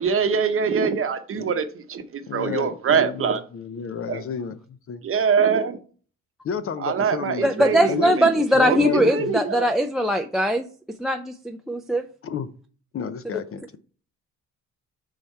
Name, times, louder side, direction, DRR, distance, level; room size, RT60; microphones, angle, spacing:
voice 1, 0.0-3.4 4.1-4.2 5.0-5.8 6.8-9.7, right 6 dB, 45° right, 0.9 m, -24 dB
voice 2, 2.3-5.0 6.4-8.2 8.5-9.3 12.2-12.5 12.9-13.6, left 6 dB, 45° left, 0.6 m, -31 dB
voice 3, 7.4-10.7 11.0-12.1, equal, ahead, 0.4 m, -21 dB
5.6 x 4.7 x 4.3 m
cardioid pair, 90°, 30 cm